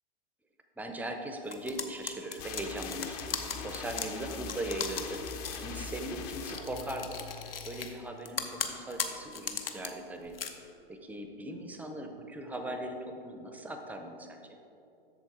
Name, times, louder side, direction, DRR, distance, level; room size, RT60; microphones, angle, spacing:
voice 1, 0.8-5.2 5.6-7.2 7.7-10.3 10.9-14.4, right 1 dB, 5° right, 5 dB, 0.5 m, -39 dB
sound 1, 1.5-5.7 6.3-7.9 8.2-9.9 10.2-10.5, left 7 dB, 75° left, 0.8 m, -37 dB
sound 2, 2.4-8.0, left 5 dB, 40° left, 0.7 m, -42 dB
7.6 x 6.7 x 4.6 m, 2.9 s
figure-of-eight pair, 105°, 29 cm